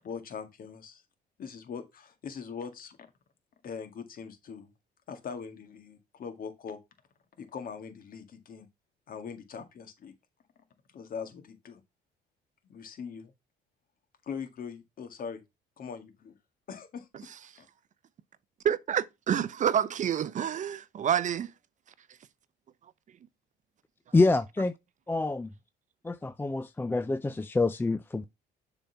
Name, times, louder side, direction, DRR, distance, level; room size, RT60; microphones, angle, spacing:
voice 1, 0.0-1.0 1.4-3.0 3.6-4.7 5.1-6.8 7.4-8.7 9.1-10.1 10.9-11.8 12.6-13.3 14.2-15.4 15.8-16.4 16.7-17.7, left 6 dB, 55° left, 1.9 m, -41 dB
voice 2, 18.6-21.5, right 9 dB, 45° right, 0.6 m, -28 dB
voice 3, 24.1-24.7 25.1-25.5 26.0-28.2, left 3 dB, 10° left, 0.4 m, -26 dB
6.9 x 4.0 x 5.7 m
supercardioid pair, 90°, 18 cm